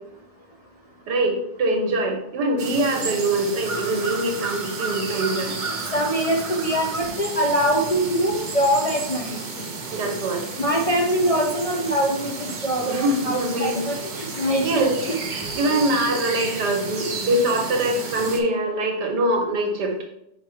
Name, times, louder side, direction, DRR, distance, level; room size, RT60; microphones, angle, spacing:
voice 1, 1.1-5.6 9.9-10.4 12.9-13.8 14.6-14.9 15.6-19.9, right 1 dB, 85° right, 2 dB, 1.8 m, -23 dB
sound 1, 2.6-18.4, right 3 dB, 45° right, 0.6 m, -32 dB
voice 2, 5.7-9.4 10.6-15.1 17.3-17.4, equal, 50° left, -2 dB, 0.4 m, -23 dB
5.1 x 4.9 x 4.3 m, 0.80 s
omnidirectional pair, 1.7 m